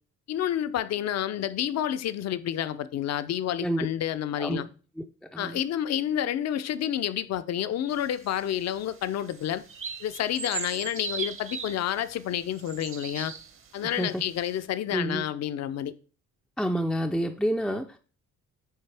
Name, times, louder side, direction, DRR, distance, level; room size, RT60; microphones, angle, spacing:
voice 1, 0.3-4.7 5.4-9.6 10.0-13.3 13.7-15.9, left 10 dB, 60° left, 0.5 m, -29 dB
sound 1, 7.9-13.9 14.4-14.6, right 7 dB, 45° right, 0.8 m, -39 dB
voice 2, 14.9-15.2 16.6-18.0, equal, ahead, 0.4 m, -28 dB
8.8 x 3.3 x 3.4 m
cardioid pair, 90°, 30 cm